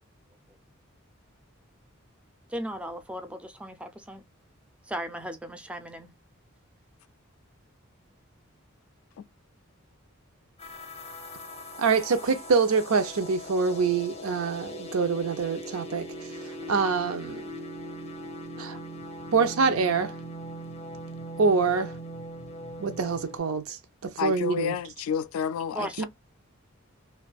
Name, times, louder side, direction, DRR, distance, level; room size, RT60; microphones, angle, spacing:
voice 1, 2.5-4.2 4.9-6.1 25.7-26.0, right 1 dB, 5° right, 0.3 m, -36 dB
sound 1, 10.6-23.4, equal, 30° left, 0.6 m, -40 dB
voice 2, 11.8-16.0 16.7-17.4 18.6-18.8 19.3-20.1 21.4-21.9 22.8-23.8 24.2-24.7 26.0-26.1, right 5 dB, 80° right, 0.5 m, -25 dB
voice 3, 24.2-26.0, left 7 dB, 85° left, 0.3 m, -30 dB
2.5 x 2.3 x 2.2 m
head